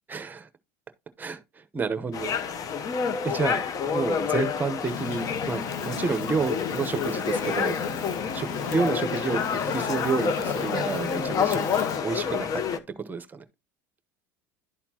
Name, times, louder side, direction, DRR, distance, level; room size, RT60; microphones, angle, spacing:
voice 1, 0.1-0.5 1.2-2.9 3.2-7.8 8.3-11.7 12.0-12.8 13.0-13.4, right 4 dB, 20° right, 0.9 m, -30 dB
sound 1, 2.1-12.8, left 6 dB, 40° left, 0.8 m, -29 dB
Fire, 4.9-12.0, left 5 dB, 80° left, 1.5 m, -35 dB
11.5 x 4.3 x 2.9 m
supercardioid pair, 105°, 9 cm